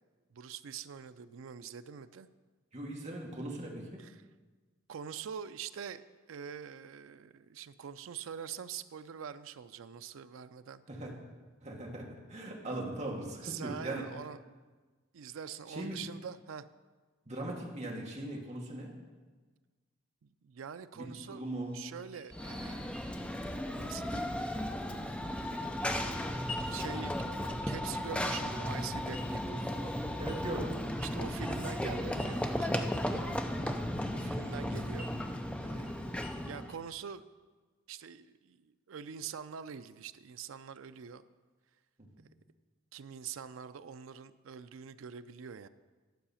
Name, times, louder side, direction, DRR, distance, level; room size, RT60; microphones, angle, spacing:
voice 1, 0.3-2.3 4.0-4.1 4.9-6.0 6.3-10.8 13.4-14.4 15.1-16.7 20.2-21.4 21.7-23.0 23.7-24.4 26.7-30.0 31.0-32.7 34.1-35.1 35.6-37.2 37.9-41.2 42.9-45.7, right 7 dB, 75° right, 12 dB, 0.4 m, -44 dB
voice 2, 2.7-4.0 10.9-11.1 11.6-14.0 15.7-16.0 17.3-18.9 20.9-21.7 30.2-30.8 34.5-34.8 42.2-42.3, right 1 dB, 35° right, -1 dB, 1.5 m, -40 dB
sound 1, 21.1-37.0, left 3 dB, 30° left, 1.2 m, -54 dB
Run / Train, 22.3-36.8, left 1 dB, 5° left, 0.5 m, -35 dB
11.5 x 4.9 x 7.0 m, 1.4 s
head